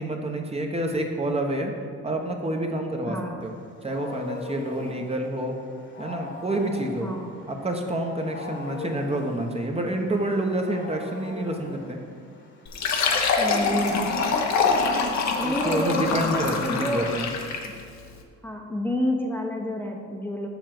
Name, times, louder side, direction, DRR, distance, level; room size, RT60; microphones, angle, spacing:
voice 1, 0.0-1.7 2.0-3.2 3.4-3.5 3.8-5.5 6.0-7.1 7.5-12.0 15.4-17.3, right 1 dB, 20° right, 2 dB, 1.0 m, -28 dB
voice 2, 3.1-3.4 7.0-7.3 13.4-14.2 15.4-17.1 17.6-17.7 18.4-20.5, left 1 dB, 5° left, -1 dB, 0.9 m, -29 dB
Wild animals, 3.5-14.7, left 3 dB, 40° left, 1.5 m, -41 dB
Fill (with liquid), 12.7-17.8, left 4 dB, 65° left, 1.1 m, -25 dB
7.1 x 6.3 x 6.0 m, 2.2 s
cardioid pair, 90°, 30 cm